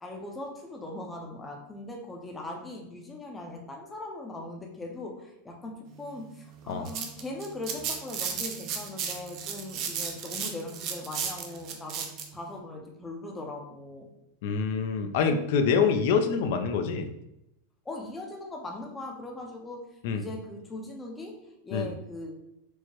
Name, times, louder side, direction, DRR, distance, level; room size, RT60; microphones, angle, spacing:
voice 1, 0.0-12.1 12.3-14.1 17.8-22.3, left 2 dB, 10° left, 0 dB, 0.5 m, -40 dB
sound 1, 6.6-12.3, right 7 dB, 40° right, 0.5 m, -34 dB
voice 2, 14.4-17.1 20.0-20.2 21.7-21.9, left 5 dB, 60° left, 6 dB, 0.4 m, -26 dB
4.6 x 2.1 x 2.9 m, 0.84 s
supercardioid pair, 150°, 0 cm